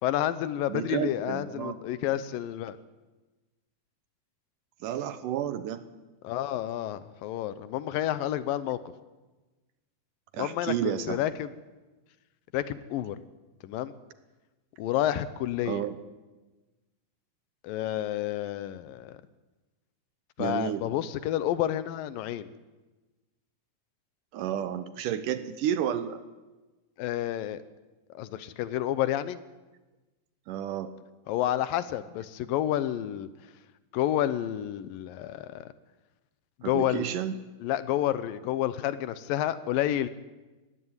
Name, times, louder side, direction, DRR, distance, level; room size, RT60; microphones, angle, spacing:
voice 1, 0.0-2.8 6.2-8.8 10.4-11.5 12.5-13.2 13.6-13.9 14.8-15.8 17.6-19.2 20.4-22.5 27.0-27.6 28.1-29.4 31.3-33.3 33.9-35.7 36.7-37.1 37.6-40.1, left 12 dB, 75° left, 15 dB, 2.4 m, -30 dB
voice 2, 0.7-1.8 4.8-5.8 10.3-11.2 15.7-16.0 20.4-20.8 24.3-26.2 30.5-30.9 36.6-37.4, right 10 dB, 75° right, 12 dB, 2.2 m, -31 dB
19.0 x 16.0 x 9.6 m, 1.2 s
omnidirectional pair, 4.3 m